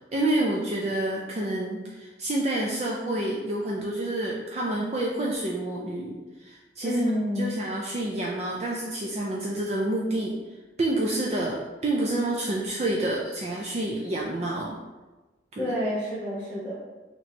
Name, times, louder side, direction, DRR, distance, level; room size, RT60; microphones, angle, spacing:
voice 1, 0.1-7.0 7.4-10.4 10.8-14.8 15.5-15.7, right 1 dB, 35° right, -2 dB, 0.4 m, -28 dB
voice 2, 6.8-7.6 15.6-16.7, equal, 15° left, -11 dB, 1.2 m, -28 dB
3.0 x 2.9 x 4.2 m, 1.2 s
head